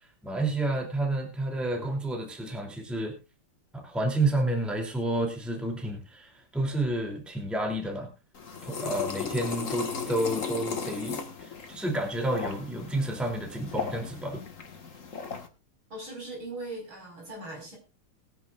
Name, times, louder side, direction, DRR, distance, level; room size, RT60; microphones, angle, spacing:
voice 1, 0.2-3.1 3.7-8.1 8.6-14.4, right 1 dB, ahead, 2 dB, 2.8 m, -30 dB
sound 1, 8.3-15.5, left 5 dB, 40° left, 1.8 m, -36 dB
voice 2, 15.9-17.8, right 2 dB, 65° right, 1 dB, 6.0 m, -39 dB
21.5 x 10.0 x 2.5 m, 0.29 s
omnidirectional pair, 2.4 m